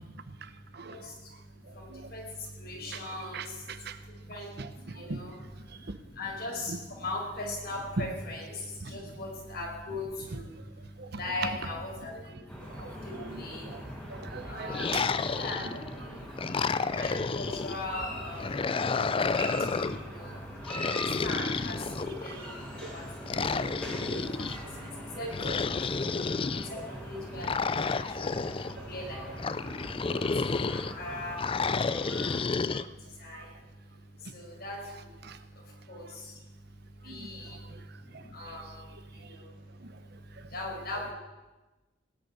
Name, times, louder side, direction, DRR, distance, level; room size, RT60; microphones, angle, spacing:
voice 1, 2.6-3.4 4.3-4.5 5.0-5.3 6.2-6.7 7.0-8.6 8.9-10.5 11.1-12.1 12.8-12.9 13.2-13.7 14.5-15.8 17.0-18.5 20.1-20.4 21.2-22.6 22.9-23.0 23.3-23.5 25.2-25.3 25.6-25.8 26.7-28.0 28.2-28.4 28.9-29.2 30.1-30.3 30.7-31.4 32.1-32.3 33.2-33.4 34.3-34.8 35.9-36.0 37.0-37.6 38.3-38.8 39.3-39.4 40.5-41.0, left 2 dB, 55° left, -2 dB, 5.4 m, -38 dB
voice 2, 3.3-4.0 4.6-5.2 5.9-6.0 8.8-8.9 11.0-11.1 12.8-12.9 13.7-13.8 14.1-15.3 19.5-20.0 22.8-22.9 23.4-24.2 25.2-25.3 28.2-28.3 28.8-28.9 30.1-30.2 32.1-32.2 33.3-33.4 35.2-35.4 37.1-37.3, right 4 dB, 60° right, 11 dB, 0.9 m, -42 dB
sound 1, 12.5-32.4, equal, 5° left, 3.6 m, -42 dB
sound 2, 14.7-15.9 16.4-17.8 18.4-20.0 20.6-22.4 23.3-24.6 25.3-26.7 27.4-28.7 29.4-30.9 31.4-32.8, left 4 dB, 30° left, 0.4 m, -30 dB
18.0 x 6.7 x 9.5 m, 1.1 s
head